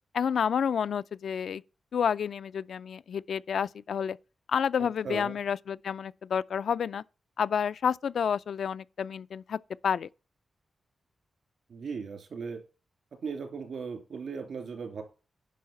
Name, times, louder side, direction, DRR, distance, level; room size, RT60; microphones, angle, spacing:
voice 1, 0.1-1.6 1.9-4.2 4.5-7.0 7.4-10.1, left 7 dB, 70° left, 0.4 m, -29 dB
voice 2, 4.8-5.4 11.7-12.6 13.2-15.0, right 5 dB, 70° right, 2.9 m, -37 dB
10.5 x 5.8 x 5.3 m
wide cardioid pair, 135°, 0 cm